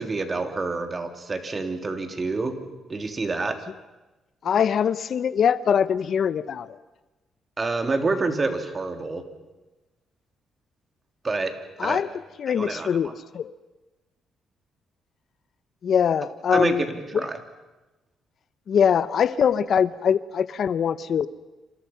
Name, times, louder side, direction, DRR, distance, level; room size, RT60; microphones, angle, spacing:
voice 1, 0.0-2.6 2.9-3.6 7.6-9.2 11.2-11.5 11.8-12.0 12.5-13.1 16.5-17.4, right 3 dB, 30° right, 6 dB, 3.1 m, -27 dB
voice 2, 4.4-6.8 11.8-12.1 12.4-13.5 15.8-16.8 17.1-17.2 18.7-21.3, left 7 dB, 60° left, 16 dB, 0.8 m, -23 dB
27.5 x 27.5 x 5.8 m, 1.1 s
cardioid pair, 90°, 0 cm